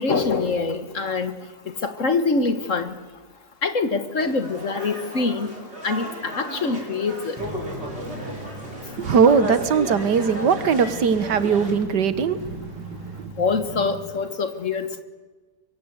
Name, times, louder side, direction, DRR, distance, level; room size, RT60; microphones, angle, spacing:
voice 1, 0.0-1.3 1.8-3.0 3.6-5.5 5.8-7.4 13.4-15.0, left 4 dB, 50° left, 10 dB, 1.8 m, -24 dB
sound 1, 4.2-11.7, right 1 dB, 35° right, 6.7 m, -35 dB
sound 2, 7.4-14.1, right 1 dB, 10° right, 7.5 m, -38 dB
voice 2, 9.0-12.4, right 6 dB, 75° right, 13 dB, 1.9 m, -19 dB
24.5 x 23.0 x 8.1 m, 1.3 s
omnidirectional pair, 1.8 m